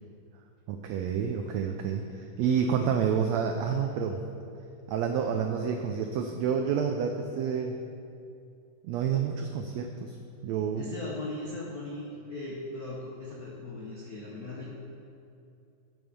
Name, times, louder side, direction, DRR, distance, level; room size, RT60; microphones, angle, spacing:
voice 1, 0.7-4.2 4.9-7.8 8.8-10.1 10.4-10.9, right 7 dB, 80° right, 4 dB, 1.6 m, -29 dB
voice 2, 10.8-14.7, left 2 dB, 75° left, -5 dB, 0.8 m, -38 dB
12.5 x 9.0 x 5.3 m, 2.6 s
omnidirectional pair, 3.7 m